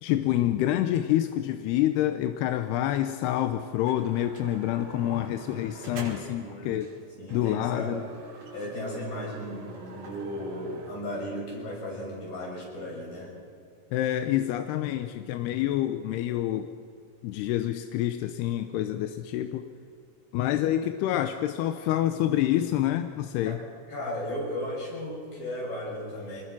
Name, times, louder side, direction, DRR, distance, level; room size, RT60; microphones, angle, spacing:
voice 1, 0.0-6.9 7.3-8.0 13.9-16.7 17.2-19.7 20.3-23.6, left 12 dB, 85° left, 8 dB, 2.8 m, -27 dB
sound 1, 3.4-3.5 3.9-6.5 6.8-7.0 7.3-10.9, right 3 dB, 85° right, 5.7 m, -44 dB
voice 2, 6.4-6.8 7.2-8.0 8.5-13.3 23.4-23.6 23.9-26.4, left 1 dB, 55° left, -3 dB, 8.4 m, -35 dB
25.0 x 21.0 x 6.1 m, 2.3 s
omnidirectional pair, 4.7 m